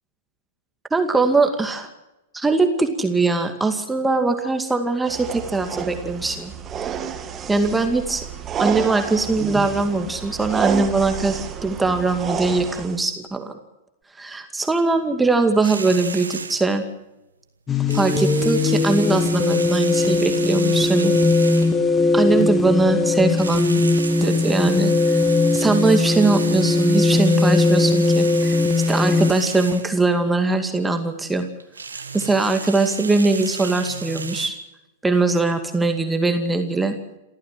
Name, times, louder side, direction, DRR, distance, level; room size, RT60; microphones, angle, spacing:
voice 1, 0.9-1.9 2.3-6.5 7.5-8.2 8.6-13.5 14.2-16.9 17.9-21.2 22.1-23.8 24.2-25.2 25.5-28.6 28.9-31.5 32.1-34.6 35.0-36.9, right 3 dB, 10° right, 6 dB, 2.2 m, -21 dB
sound 1, 5.0-13.0, right 8 dB, 25° right, 2.4 m, -30 dB
sound 2, 15.6-16.7 17.8-21.9 23.2-29.9 31.6-34.5, right 5 dB, 80° right, 1.9 m, -33 dB
sound 3, 17.7-29.3, left 3 dB, 20° left, 1.9 m, -19 dB
28.5 x 13.5 x 7.7 m, 0.96 s
figure-of-eight pair, 100°, 0 cm